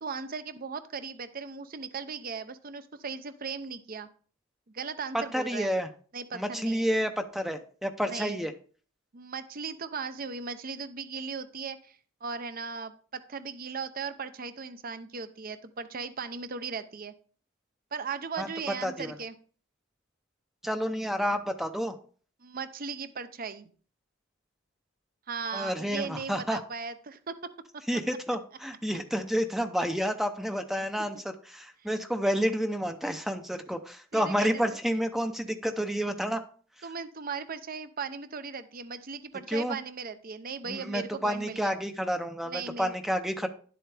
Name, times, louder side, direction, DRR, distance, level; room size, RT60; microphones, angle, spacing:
voice 1, 0.0-4.1 4.7-5.7 6.1-6.9 8.1-8.4 9.1-17.1 17.9-19.3 22.4-23.7 25.3-27.4 34.1-34.6 36.8-41.7 42.5-42.9, right 5 dB, 45° right, 11 dB, 0.7 m, -37 dB
voice 2, 5.1-5.9 6.3-8.5 18.4-18.5 18.8-19.1 20.6-22.0 25.5-26.6 27.9-31.2 31.5-36.4 39.5-39.8 40.6-43.5, equal, ahead, 7 dB, 0.6 m, -30 dB
11.5 x 7.8 x 3.4 m, 0.43 s
head